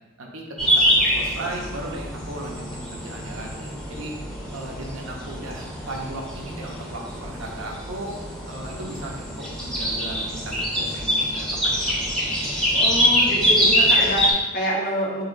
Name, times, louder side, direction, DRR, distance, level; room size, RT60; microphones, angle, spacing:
sound 1, 0.6-14.3, equal, 5° left, 0.7 m, -24 dB
voice 1, 0.7-4.1 4.5-8.2 8.5-12.0, right 1 dB, 90° right, 0 dB, 0.9 m, -36 dB
voice 2, 12.7-15.2, equal, 45° left, -3 dB, 0.8 m, -27 dB
7.0 x 2.9 x 2.6 m, 1.1 s
head